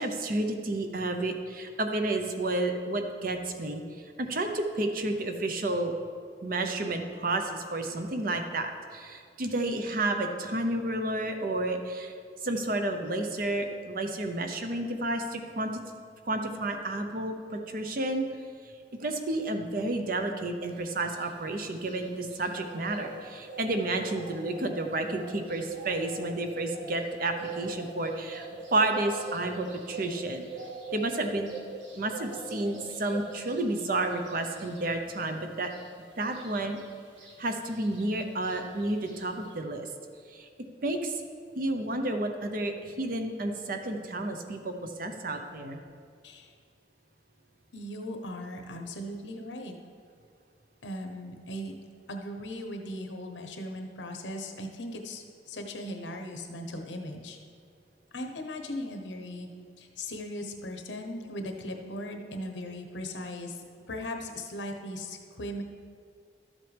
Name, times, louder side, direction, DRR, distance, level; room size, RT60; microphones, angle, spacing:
voice 1, 0.0-3.8 4.2-5.9 6.4-12.1 12.4-15.8 16.3-18.3 19.0-30.5 30.9-31.5 32.0-35.7 36.2-36.8 37.4-39.9 40.3-40.5 40.8-41.2 41.6-45.8, right 2 dB, 50° right, 5 dB, 0.8 m, -31 dB
sound 1, 20.7-39.5, right 3 dB, 85° right, 1.6 m, -44 dB
voice 2, 47.7-49.7 50.8-51.8 52.1-57.4 58.1-59.5 59.8-63.6 63.9-65.6, left 1 dB, 90° left, 4 dB, 1.0 m, -38 dB
12.5 x 7.4 x 3.4 m, 2.1 s
head